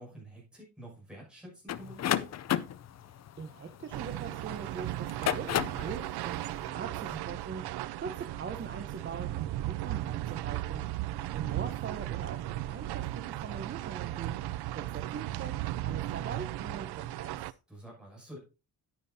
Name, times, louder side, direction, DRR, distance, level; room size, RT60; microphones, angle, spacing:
voice 1, 0.0-2.3 6.8-7.2 17.7-18.4, right 1 dB, ahead, -4 dB, 6.3 m, -48 dB
sound 1, 1.7-4.4 5.0-5.9, left 11 dB, 45° left, 0.5 m, -31 dB
voice 2, 3.0-10.9 11.3-14.4 14.7-17.5, right 5 dB, 30° right, 5 dB, 0.9 m, -42 dB
sound 2, 3.9-17.5, right 15 dB, 85° right, 0.5 m, -36 dB
9.9 x 9.4 x 2.7 m, 0.29 s
cardioid pair, 155°, 38 cm